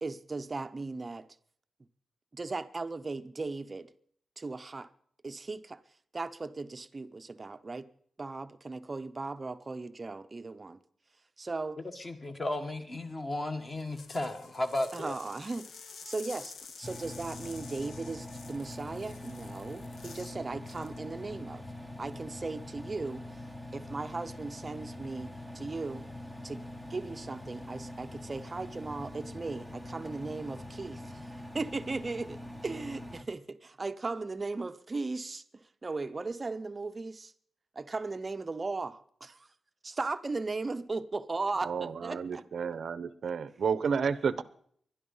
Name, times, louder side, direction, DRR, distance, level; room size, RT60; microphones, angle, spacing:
voice 1, 0.0-1.3 2.3-3.9 4.4-4.9 5.2-5.8 6.1-7.9 8.2-10.8 11.4-11.8 14.9-15.7 16.0-21.6 22.0-23.2 23.7-26.1 26.4-26.6 26.9-37.3 37.7-39.5 39.8-42.4, right 3 dB, 25° right, 0.7 m, -37 dB
voice 2, 11.9-15.2, left 1 dB, 25° left, 1.6 m, -34 dB
sound 1, 13.7-20.4 20.7-21.0, left 5 dB, 70° left, 1.1 m, -50 dB
Engine, 16.8-33.2, left 1 dB, 10° left, 0.9 m, -44 dB
voice 3, 41.7-44.4, right 6 dB, 55° right, 0.7 m, -31 dB
21.5 x 12.0 x 5.5 m
wide cardioid pair, 175°, 0 cm